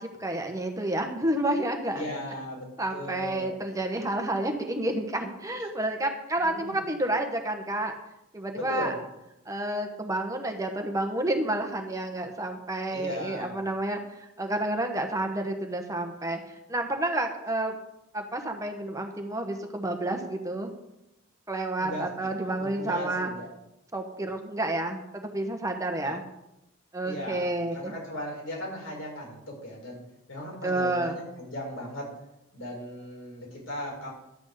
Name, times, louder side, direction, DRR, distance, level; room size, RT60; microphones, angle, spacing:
voice 1, 0.0-2.2 2.8-7.9 8.3-8.9 9.4-17.8 18.1-20.7 21.5-23.3 23.9-26.2 26.9-27.9 30.6-31.2, right 1 dB, 15° right, 4 dB, 1.1 m, -30 dB
voice 2, 1.9-3.5 6.5-6.8 8.5-9.0 12.9-13.6 21.8-23.5 25.9-26.2 27.0-30.0 30.3-32.1 32.5-34.1, left 1 dB, 85° left, -2 dB, 5.3 m, -37 dB
11.5 x 6.2 x 8.0 m, 0.89 s
head